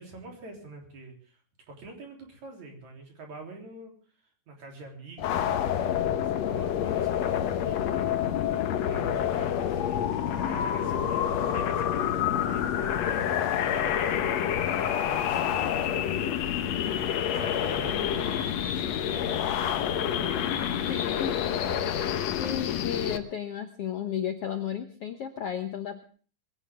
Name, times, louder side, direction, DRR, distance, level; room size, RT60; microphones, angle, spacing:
voice 1, 0.0-1.4 1.7-4.0 4.5-8.2 8.6-10.0 10.3-16.8 17.3-20.7, right 2 dB, 50° right, 2 dB, 4.8 m, -45 dB
sound 1, 5.2-23.2, left 9 dB, 70° left, 1.6 m, -28 dB
voice 2, 20.9-21.6 22.0-26.0, left 8 dB, 85° left, 6 dB, 1.3 m, -34 dB
21.5 x 17.0 x 3.7 m, 0.41 s
omnidirectional pair, 4.5 m